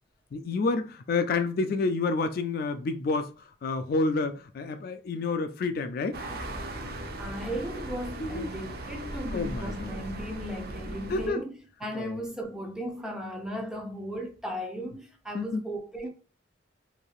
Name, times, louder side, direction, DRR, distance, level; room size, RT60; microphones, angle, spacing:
voice 1, 0.3-6.2 8.2-8.5 9.3-9.9 11.1-11.4 11.9-12.2 15.3-15.7, left 3 dB, 55° left, 0.3 m, -29 dB
sound 1, 6.1-11.3, right 1 dB, 55° right, 0.6 m, -38 dB
voice 2, 7.2-11.5 11.8-16.1, equal, 5° right, 0.7 m, -36 dB
3.1 x 2.7 x 2.4 m
head